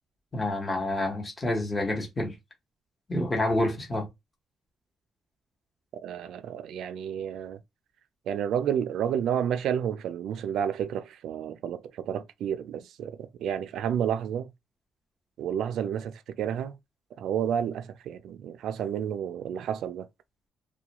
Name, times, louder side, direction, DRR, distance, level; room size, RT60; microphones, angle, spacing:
voice 1, 0.3-2.3 3.1-4.1, left 1 dB, 25° left, 1.0 m, -28 dB
voice 2, 5.9-7.6 8.3-14.5 15.4-16.8 17.2-20.1, right 9 dB, 75° right, 0.3 m, -30 dB
2.3 x 2.2 x 2.9 m
cardioid pair, 90°, 0 cm